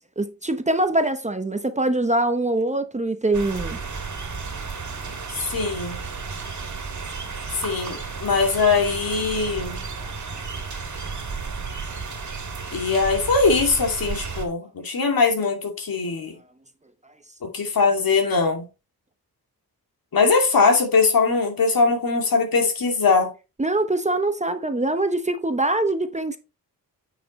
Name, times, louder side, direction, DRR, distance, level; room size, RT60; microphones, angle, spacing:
voice 1, 0.2-3.8 10.0-10.1 23.6-26.4, right 2 dB, 20° right, 0.8 m, -23 dB
sound 1, 3.3-14.5, right 4 dB, 50° right, 2.2 m, -33 dB
voice 2, 5.4-6.0 7.6-9.8 12.7-16.3 17.4-18.7 20.1-23.3, left 4 dB, 70° left, 2.6 m, -21 dB
9.0 x 5.9 x 3.1 m
wide cardioid pair, 110°, 37 cm